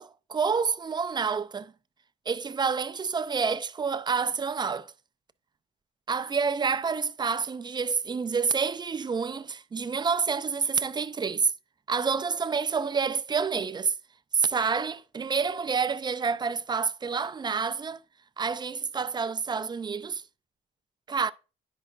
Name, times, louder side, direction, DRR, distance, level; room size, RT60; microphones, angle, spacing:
voice 1, 0.0-1.7 2.3-4.9 6.1-11.5 11.9-13.9 14.3-18.0 18.4-20.2 21.1-21.3, right 5 dB, 20° right, 0.3 m, -28 dB
9.8 x 5.3 x 2.4 m
cardioid pair, 90°, 20 cm